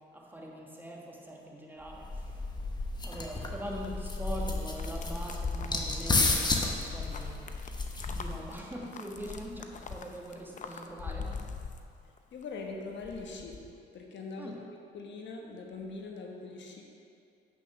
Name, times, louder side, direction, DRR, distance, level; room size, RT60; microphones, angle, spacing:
voice 1, 0.1-2.4 3.0-7.5 8.1-11.4 14.4-14.6, equal, 10° right, -2 dB, 1.5 m, -42 dB
sound 1, 1.9-8.6, left 2 dB, 20° left, 1.1 m, -32 dB
sound 2, 2.5-12.4 12.7-13.7, left 5 dB, 40° left, 0.7 m, -42 dB
voice 2, 12.3-13.5 13.9-14.6 14.9-16.8, left 3 dB, 65° left, 1 dB, 1.2 m, -41 dB
8.3 x 6.2 x 5.9 m, 2.5 s
cardioid pair, 90°, 20 cm